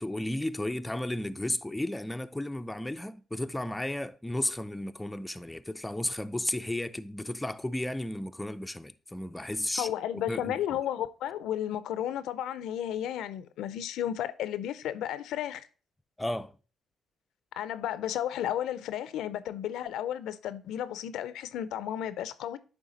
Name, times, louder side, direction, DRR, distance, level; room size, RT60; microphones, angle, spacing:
voice 1, 0.0-9.9 10.3-10.6 16.2-16.5, left 1 dB, 10° left, 0.4 m, -33 dB
voice 2, 9.8-15.7 17.6-22.6, left 11 dB, 85° left, 0.4 m, -33 dB
9.0 x 3.5 x 3.9 m
cardioid pair, 90°, 0 cm